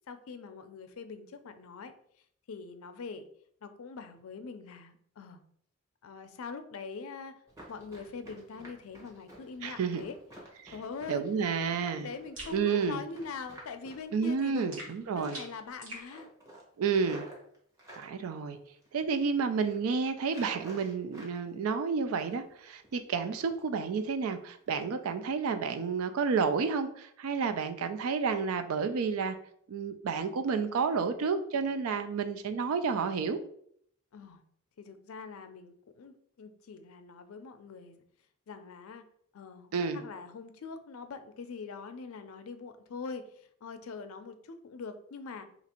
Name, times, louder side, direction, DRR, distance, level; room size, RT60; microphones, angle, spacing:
voice 1, 0.1-1.9 2.5-3.2 3.6-5.4 6.0-7.4 7.7-10.1 10.7-11.2 11.8-14.8 15.1-16.3 18.0-18.1 34.1-34.4 34.8-38.0 38.5-39.0 39.3-45.5, left 4 dB, 85° left, 9 dB, 0.4 m, -43 dB
Run, 7.5-14.9 15.2-15.6 15.9-18.1 18.6-19.2 19.5-19.8 20.2-21.4 21.7-22.5 22.8-23.0 23.4-23.7 24.1-24.2 24.7-24.8 25.2-25.3, right 1 dB, 15° right, 0.9 m, -52 dB
voice 2, 9.6-10.0 10.6-10.7 11.1-12.1 12.5-13.0 14.1-15.4 16.8-17.3 17.9-18.6 18.9-29.4 29.7-33.4 39.7-40.0, right 5 dB, 90° right, 9 dB, 0.4 m, -30 dB
sound 1, 12.4-12.6 14.7-16.1, right 1 dB, 75° right, 1.4 m, -44 dB
2.9 x 2.5 x 4.2 m, 0.65 s
head